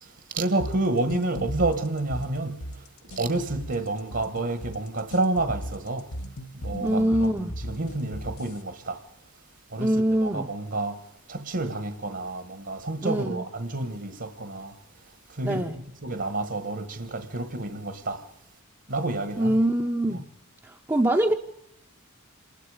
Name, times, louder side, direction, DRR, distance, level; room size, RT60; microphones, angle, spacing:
voice 1, 0.0-6.1 6.5-9.0 9.7-14.8 15.3-18.2 18.9-19.6, right 2 dB, 55° right, 1.5 m, -29 dB
sound 1, 0.6-8.6, equal, 85° left, 1.4 m, -37 dB
voice 2, 6.8-7.5 9.8-10.5 13.0-13.4 15.4-15.7 19.4-20.2 20.6-21.3, right 1 dB, 15° right, 0.8 m, -24 dB
27.5 x 20.5 x 5.0 m
head